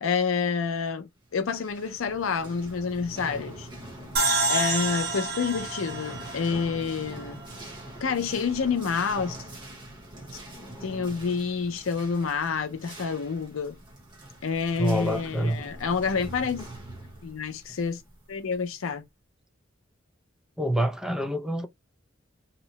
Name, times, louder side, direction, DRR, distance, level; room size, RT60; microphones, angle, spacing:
voice 1, 0.0-3.7 4.5-7.4 8.0-9.4 10.8-13.8 14.4-16.7 17.2-18.0 18.3-19.0, left 5 dB, 80° left, 0.5 m, -28 dB
sound 1, 1.4-18.8, right 1 dB, 25° right, 0.9 m, -44 dB
sound 2, 4.2-7.5, right 3 dB, 50° right, 1.0 m, -29 dB
voice 2, 14.8-15.6 20.6-21.7, equal, 5° right, 0.4 m, -27 dB
2.8 x 2.1 x 2.8 m
head